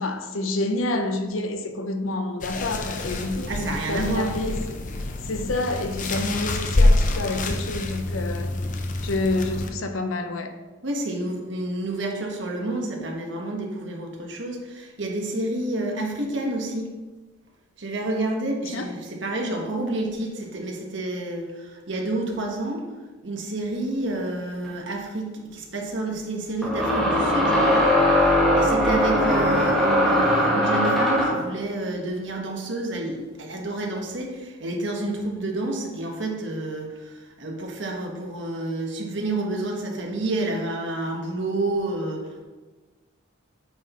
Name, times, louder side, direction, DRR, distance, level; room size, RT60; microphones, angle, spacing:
voice 1, 0.0-8.6 9.0-10.6 18.7-19.0, left 2 dB, 85° left, 0.7 m, -28 dB
sound 1, 2.4-9.7, left 2 dB, 40° left, 0.6 m, -26 dB
voice 2, 3.5-4.4 10.8-16.9 17.8-22.8 23.2-27.9 28.5-42.4, right 2 dB, 65° right, 1.3 m, -29 dB
sound 2, 24.7-24.8 26.6-31.5, equal, ahead, 1.2 m, -20 dB
8.6 x 6.1 x 3.0 m
head